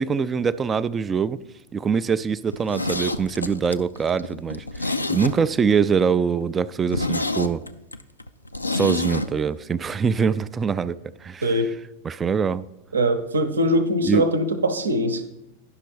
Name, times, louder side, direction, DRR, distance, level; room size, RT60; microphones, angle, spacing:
voice 1, 0.0-1.4 1.7-7.6 8.7-11.6 12.0-12.6 14.0-14.2, right 6 dB, 20° right, 0.3 m, -23 dB
Zipper (clothing), 2.5-5.8 6.1-6.2 6.5-6.6 6.9-9.3 9.6-9.7, left 2 dB, 85° left, 0.4 m, -28 dB
voice 2, 12.9-15.2, equal, 70° right, 0.8 m, -22 dB
10.5 x 5.9 x 5.0 m
figure-of-eight pair, 90°, 0 cm